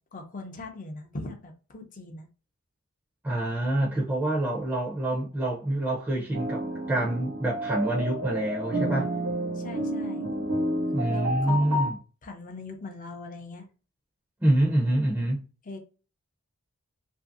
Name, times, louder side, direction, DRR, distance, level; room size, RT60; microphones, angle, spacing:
voice 1, 0.1-2.3 9.5-10.3 11.1-11.8 12.2-13.7 15.7-15.8, left 2 dB, 35° left, 0.6 m, -40 dB
voice 2, 3.2-9.1 10.9-12.0 14.4-15.4, right 1 dB, 10° right, 0.6 m, -26 dB
sound 1, 6.3-11.9, right 1 dB, 85° right, 1.1 m, -30 dB
3.0 x 2.6 x 2.5 m
head